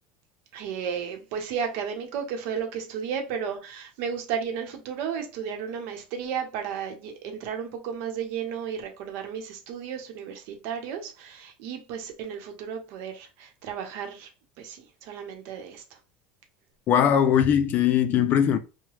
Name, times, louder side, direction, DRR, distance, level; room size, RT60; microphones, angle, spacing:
voice 1, 0.5-14.3 14.6-16.0, right 7 dB, 65° right, 0.8 m, -33 dB
voice 2, 16.9-18.6, left 9 dB, 40° left, 0.4 m, -20 dB
2.8 x 2.1 x 3.0 m
supercardioid pair, 120°, 4 cm